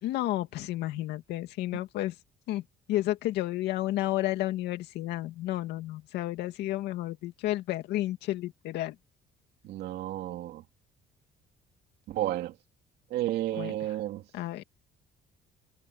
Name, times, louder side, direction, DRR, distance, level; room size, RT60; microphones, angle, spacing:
voice 1, 0.0-2.1 2.5-2.6 2.9-8.9 13.6-13.7 14.3-14.6, left 15 dB, 80° left, 2.3 m, -31 dB
voice 2, 9.6-10.6 12.1-12.5 13.1-14.2, right 14 dB, 75° right, 2.5 m, -32 dB
cardioid pair, 110°, 17 cm